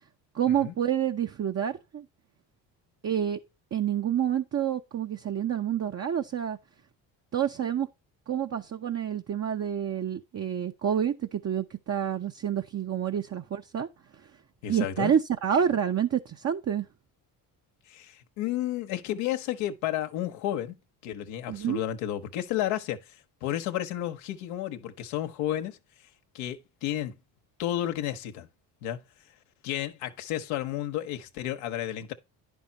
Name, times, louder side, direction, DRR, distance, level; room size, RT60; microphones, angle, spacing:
voice 1, 0.3-2.1 3.0-3.4 3.7-6.6 7.3-7.9 8.3-13.9 14.7-16.9 21.5-21.8, right 9 dB, 30° right, 0.7 m, -28 dB
voice 2, 14.6-15.1 17.9-20.7 21.0-23.0 23.4-25.8 26.3-27.2 27.6-28.5 28.8-29.0 29.6-32.1, left 12 dB, 80° left, 1.2 m, -32 dB
10.5 x 5.6 x 4.1 m
supercardioid pair, 65°, 49 cm